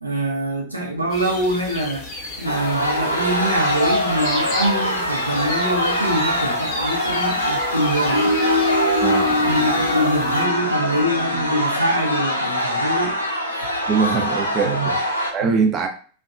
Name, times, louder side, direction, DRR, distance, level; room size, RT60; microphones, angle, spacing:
voice 1, 0.0-2.1 2.4-8.3 9.5-13.2 14.6-14.9 15.4-15.5, right 1 dB, 85° right, 0 dB, 0.6 m, -24 dB
sound 1, 1.1-10.4, left 2 dB, 35° left, 0.9 m, -33 dB
sound 2, 2.4-15.3, equal, 85° left, 0.5 m, -22 dB
voice 2, 9.0-9.7 13.9-15.9, right 5 dB, 30° right, 3 dB, 0.4 m, -23 dB
2.7 x 2.2 x 2.4 m, 0.42 s
figure-of-eight pair, 90°, 0 cm